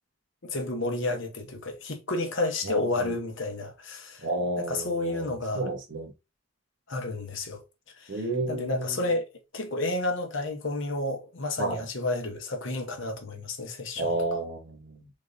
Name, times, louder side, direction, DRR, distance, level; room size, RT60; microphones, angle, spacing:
voice 1, 0.4-4.3 4.6-5.7 6.9-7.6 8.0-8.2 8.5-9.3 9.5-14.1, left 2 dB, 55° left, 0.8 m, -31 dB
voice 2, 2.6-3.1 4.2-6.1 8.1-9.0 11.6-11.8 14.0-15.1, right 2 dB, 55° right, 1.1 m, -31 dB
3.8 x 3.5 x 2.6 m
head